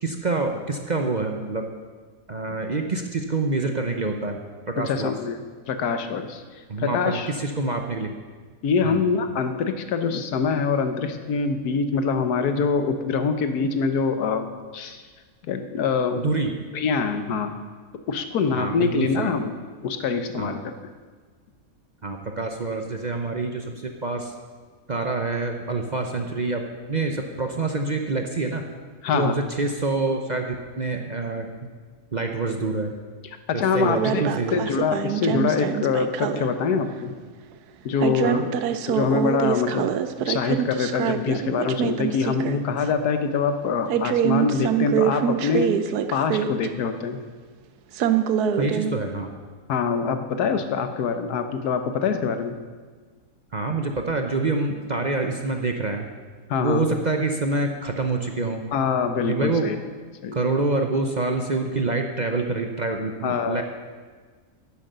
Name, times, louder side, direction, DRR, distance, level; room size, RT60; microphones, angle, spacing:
voice 1, 0.0-1.7 2.3-4.4 4.7-5.1 6.7-8.1 8.8-9.0 16.2-16.6 18.5-19.3 20.4-20.6 22.0-24.3 24.9-26.6 26.9-28.6 29.1-31.5 32.1-32.9 33.5-34.6 35.3-35.5 38.2-38.5 48.6-49.3 53.5-56.1 56.6-58.7 59.3-59.7 60.3-63.6, right 3 dB, 40° right, 4 dB, 0.7 m, -26 dB
voice 2, 4.9-5.4 5.7-6.4 6.8-7.3 8.6-14.5 14.7-15.0 15.5-16.2 16.7-17.5 18.1-19.5 19.8-20.7 29.0-29.4 33.5-34.2 34.5-37.1 37.8-38.5 38.9-39.9 40.2-45.7 46.1-47.2 49.7-52.6 56.5-56.9 58.7-59.8 60.2-60.4 63.2-63.6, left 5 dB, 85° left, 8 dB, 1.5 m, -24 dB
sound 1, 33.9-36.5 38.0-42.5 42.9-43.0 43.9-46.7 47.9-48.9, right 9 dB, 85° right, 1.2 m, -25 dB
10.5 x 10.0 x 6.7 m, 1.5 s
omnidirectional pair, 1.6 m